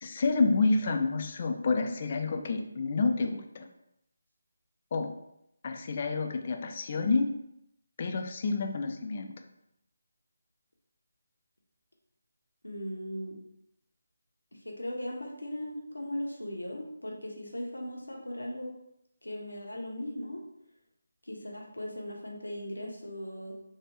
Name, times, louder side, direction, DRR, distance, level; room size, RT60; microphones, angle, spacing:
voice 1, 0.0-3.7 4.9-5.1 5.6-7.3 8.0-9.3, left 3 dB, 40° left, 5 dB, 0.3 m, -29 dB
voice 2, 12.6-13.4 14.6-18.7 19.2-20.4 21.3-23.5, left 1 dB, 90° left, 0 dB, 0.8 m, -38 dB
3.2 x 2.1 x 3.0 m, 0.80 s
figure-of-eight pair, 155°, 0 cm